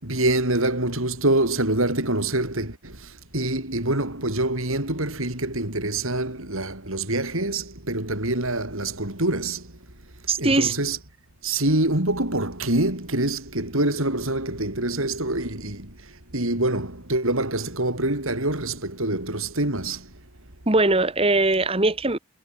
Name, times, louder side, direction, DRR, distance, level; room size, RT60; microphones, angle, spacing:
voice 1, 0.0-2.9 3.3-9.6 10.4-11.0 11.4-15.9 16.3-20.0, right 2 dB, 70° right, 5.6 m, -25 dB
voice 2, 10.3-10.7 20.7-22.2, right 2 dB, 25° right, 1.5 m, -20 dB
head